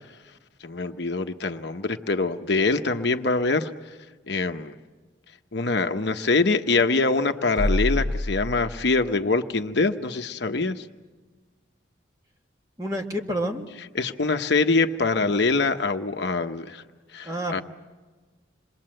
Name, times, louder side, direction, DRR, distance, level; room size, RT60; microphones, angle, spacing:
voice 1, 0.6-3.7 4.3-4.7 5.5-10.8 13.9-16.8 17.1-17.6, left 3 dB, 60° left, 7 dB, 1.0 m, -24 dB
sound 1, 7.6-9.4, left 1 dB, 70° right, 2.7 m, -27 dB
voice 2, 12.8-13.7 17.3-17.6, equal, 15° right, 1 dB, 1.9 m, -29 dB
27.5 x 21.5 x 7.8 m, 1.3 s
head